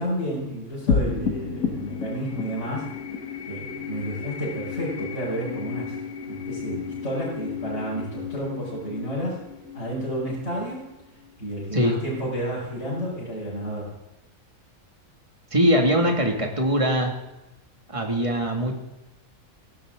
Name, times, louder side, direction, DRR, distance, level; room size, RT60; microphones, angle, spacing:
voice 1, 0.0-3.0 3.4-6.0 6.3-9.4 9.7-10.9 11.4-14.0, right 1 dB, 50° left, -8 dB, 5.5 m, -31 dB
sound 1, 0.9-11.5, left 5 dB, 75° left, 2.0 m, -32 dB
voice 2, 15.5-17.1 17.9-18.8, equal, 20° right, 2 dB, 2.3 m, -22 dB
17.0 x 16.0 x 3.8 m, 0.98 s
omnidirectional pair, 1.5 m